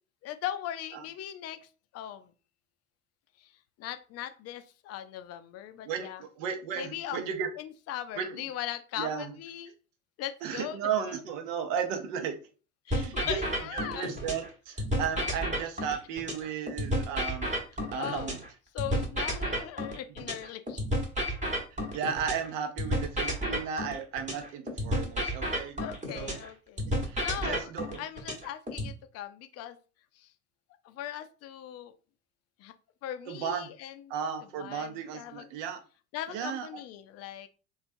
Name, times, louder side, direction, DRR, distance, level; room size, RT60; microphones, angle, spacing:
voice 1, 0.2-1.7 1.9-2.3 3.4-3.5 3.8-6.2 6.8-7.2 7.6-9.7 10.2-10.8 12.9-14.1 18.0-18.4 18.7-20.8 25.8-26.8 27.2-27.6 28.0-29.8 30.2-30.3 30.8-31.9 32.6-32.7 33.0-34.0 34.6-35.4 36.1-37.5, left 11 dB, 40° left, 10 dB, 0.4 m, -39 dB
voice 2, 5.8-7.5 8.2-8.5 9.0-9.4 10.4-12.3 12.9-13.4 13.7-17.5 17.9-18.4 19.5-19.6 21.7-25.8 26.1-26.4 26.9-28.0 33.3-33.7 34.1-35.8 36.3-36.8, right 7 dB, 65° right, 6 dB, 0.7 m, -35 dB
sound 1, 12.9-14.5 14.8-18.5 18.8-22.5 22.8-26.5 26.8-28.9, equal, 15° right, 1.0 m, -31 dB
3.1 x 2.4 x 2.5 m, 0.35 s
hypercardioid pair, 70°, 41 cm